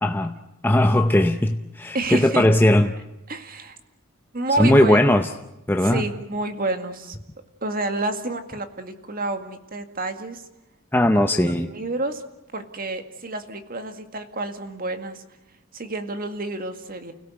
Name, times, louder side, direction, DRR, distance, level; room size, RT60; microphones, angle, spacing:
voice 1, 0.0-0.4 0.6-2.9 4.6-5.3 5.7-6.0 10.9-11.7, left 1 dB, 10° left, 5 dB, 0.7 m, -18 dB
voice 2, 1.9-2.5 3.3-3.8 4.3-5.0 5.8-7.2 7.6-10.4 11.2-12.2 12.5-15.2 15.7-17.1, right 2 dB, 45° right, 7 dB, 2.1 m, -29 dB
30.0 x 17.0 x 8.1 m, 0.96 s
head